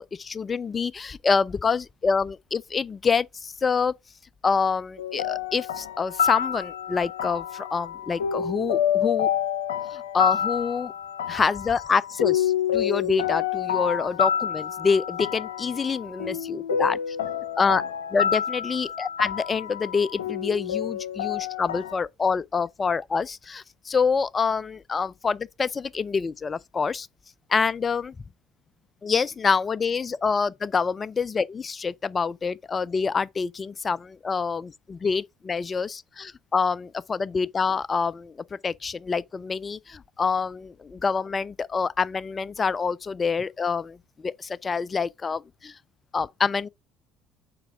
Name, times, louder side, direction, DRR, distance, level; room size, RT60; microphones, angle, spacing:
voice 1, 0.0-3.9 4.4-9.3 9.9-10.9 11.3-17.0 17.6-17.8 18.1-27.1 27.5-28.1 29.0-45.8 46.1-46.7, left 5 dB, 30° left, 0.3 m, -26 dB
sound 1, 5.0-22.0, left 9 dB, 80° left, 0.6 m, -28 dB
6.7 x 4.4 x 3.4 m
figure-of-eight pair, 60°, 0 cm